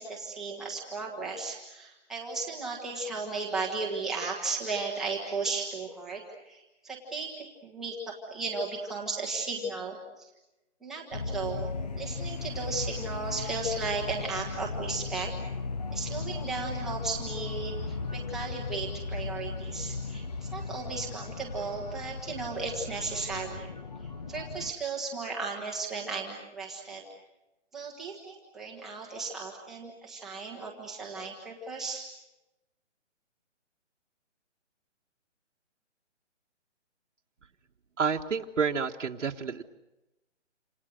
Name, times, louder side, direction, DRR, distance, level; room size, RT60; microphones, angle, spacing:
voice 1, 0.0-10.3 10.8-15.3 15.9-23.7 24.3-27.0 27.7-32.1, right 3 dB, ahead, -4 dB, 1.3 m, -35 dB
sound 1, 11.1-24.7, left 4 dB, 35° left, 1.1 m, -36 dB
voice 2, 38.0-39.6, right 5 dB, 85° right, 2 dB, 1.6 m, -29 dB
28.0 x 27.5 x 6.5 m, 0.98 s
hypercardioid pair, 175°, 36 cm